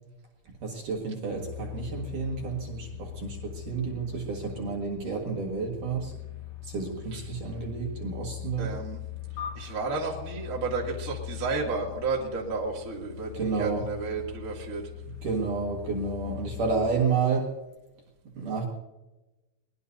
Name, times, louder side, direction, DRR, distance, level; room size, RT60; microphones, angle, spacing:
voice 1, 0.6-6.1 6.6-8.7 13.3-13.8 15.2-17.5 18.3-18.7, right 5 dB, 55° right, -1 dB, 2.8 m, -30 dB
sound 1, 1.3-16.9, left 13 dB, 35° left, 2.4 m, -41 dB
voice 2, 8.6-9.0 9.5-14.8, right 4 dB, 25° right, -2 dB, 2.1 m, -32 dB
sound 2, 9.4-12.1, left 6 dB, 85° left, 4.8 m, -44 dB
22.0 x 20.5 x 2.7 m, 1.0 s
omnidirectional pair, 5.3 m